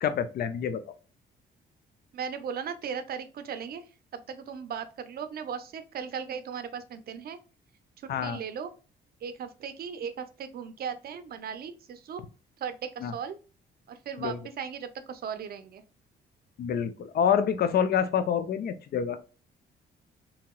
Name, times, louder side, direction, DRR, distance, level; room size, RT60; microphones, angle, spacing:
voice 1, 0.0-0.8 8.1-8.4 13.0-13.1 14.2-14.4 16.6-19.2, left 8 dB, 60° left, 11 dB, 0.5 m, -27 dB
voice 2, 2.1-7.4 8.0-8.7 9.2-12.2 12.6-13.4 13.9-15.8, right 7 dB, 55° right, 10 dB, 0.5 m, -37 dB
2.9 x 2.8 x 2.2 m, 0.34 s
cardioid pair, 95°, 19 cm